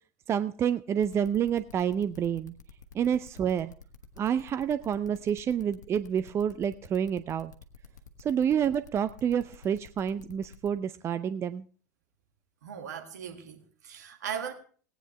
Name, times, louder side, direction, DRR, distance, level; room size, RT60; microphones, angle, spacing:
voice 1, 0.3-2.5 2.9-3.7 4.2-7.5 8.2-11.6, right 8 dB, 30° right, 0.5 m, -28 dB
sound 1, 1.0-10.7, left 6 dB, 75° left, 1.2 m, -51 dB
voice 2, 12.6-14.5, right 8 dB, 70° right, 1.8 m, -38 dB
18.5 x 9.2 x 3.3 m
figure-of-eight pair, 80°, 10 cm